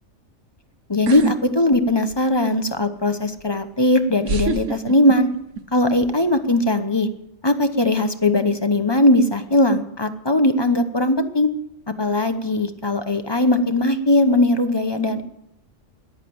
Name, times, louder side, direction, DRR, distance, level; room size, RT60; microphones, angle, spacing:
voice 1, 0.9-5.3 5.7-7.1 7.4-11.5 12.0-15.2, left 1 dB, 20° left, 9 dB, 0.9 m, -19 dB
sound 1, 1.1-1.4 1.7-2.4 3.4-3.5 4.2-5.6 5.9-6.3, right 5 dB, 75° right, 1.3 m, -26 dB
14.0 x 11.0 x 7.8 m, 0.82 s
omnidirectional pair, 1.3 m